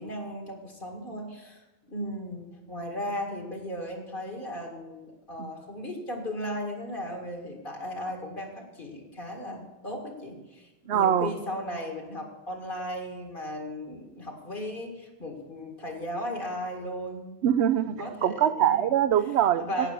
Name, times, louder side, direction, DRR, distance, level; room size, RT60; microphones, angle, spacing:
voice 1, 0.0-17.4 17.8-18.9 19.6-19.9, left 1 dB, 55° left, 2 dB, 2.3 m, -36 dB
voice 2, 10.9-11.3 17.4-17.9 18.2-19.9, right 10 dB, 80° right, 12 dB, 0.9 m, -23 dB
11.5 x 9.1 x 6.1 m, 1.1 s
omnidirectional pair, 1.1 m